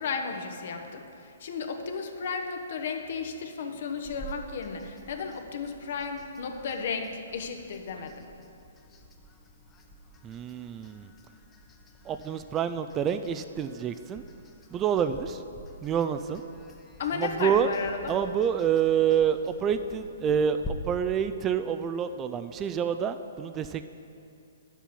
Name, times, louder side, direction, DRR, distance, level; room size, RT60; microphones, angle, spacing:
voice 1, 0.0-8.3 17.0-18.1, left 5 dB, 60° left, 5 dB, 1.0 m, -34 dB
sound 1, 4.0-20.7, equal, 20° left, 0.9 m, -49 dB
voice 2, 10.2-11.1 12.0-14.2 14.7-15.4 15.8-16.4 17.1-17.7 18.1-23.9, right 8 dB, 20° right, 10 dB, 0.3 m, -27 dB
9.9 x 7.3 x 5.4 m, 2.5 s
hypercardioid pair, 130°, 0 cm